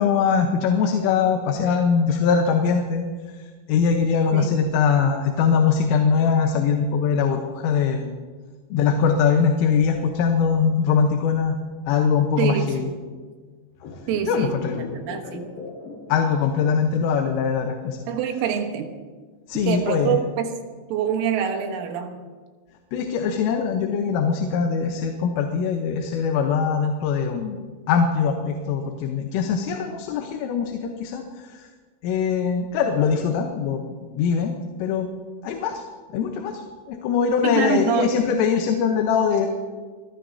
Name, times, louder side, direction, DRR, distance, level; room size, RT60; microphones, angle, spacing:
voice 1, 0.0-3.1 3.7-8.1 8.7-11.6 11.9-12.9 14.3-14.8 15.2-15.3 16.1-18.0 19.5-20.2 22.9-27.6 27.9-31.7 32.0-33.8 34.1-34.5 34.8-35.1 35.4-35.8 36.1-36.6 36.9-39.5, left 6 dB, 85° left, 4 dB, 3.7 m, -22 dB
voice 2, 12.4-12.9 14.1-15.5 18.1-18.9 19.6-20.5 20.9-22.1 37.4-38.1, right 7 dB, 85° right, 4 dB, 3.8 m, -25 dB
sound 1, 13.7-17.1 17.4-17.5, left 4 dB, 65° left, 4.0 m, -39 dB
24.0 x 19.0 x 2.8 m, 1.5 s
omnidirectional pair, 5.6 m